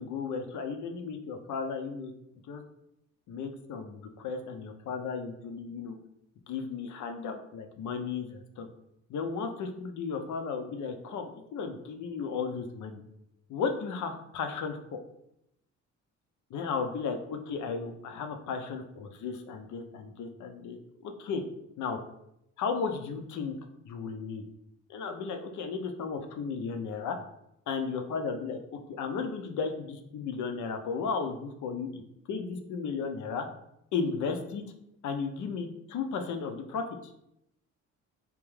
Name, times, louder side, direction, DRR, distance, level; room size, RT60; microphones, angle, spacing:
voice 1, 0.0-2.1 2.5-2.6 3.3-6.0 6.5-8.7 9.1-13.0 13.5-14.8 16.5-20.8 21.0-21.4 21.8-22.0 22.6-23.6 23.8-24.4 24.9-27.2 27.7-28.6 29.0-32.0 32.3-33.5 33.9-34.6 35.0-36.8, left 5 dB, 75° left, 5 dB, 0.6 m, -34 dB
3.5 x 2.9 x 3.2 m, 0.79 s
cardioid pair, 90°, 30 cm